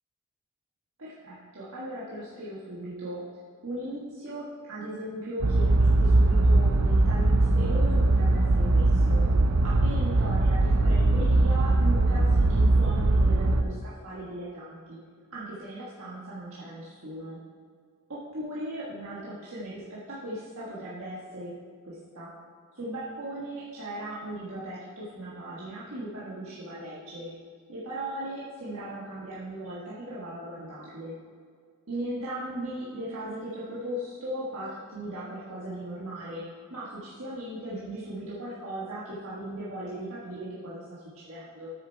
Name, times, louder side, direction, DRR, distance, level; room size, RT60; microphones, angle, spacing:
voice 1, 1.0-3.2 3.6-9.2 9.6-15.0 15.3-17.4 18.1-21.5 21.8-22.3 22.7-27.3 27.7-31.1 31.9-36.4 36.7-41.7, right 1 dB, 75° right, -8 dB, 1.5 m, -38 dB
sound 1, 5.4-13.6, right 2 dB, 90° right, 0.6 m, -21 dB
8.6 x 6.8 x 4.5 m, 2.1 s
head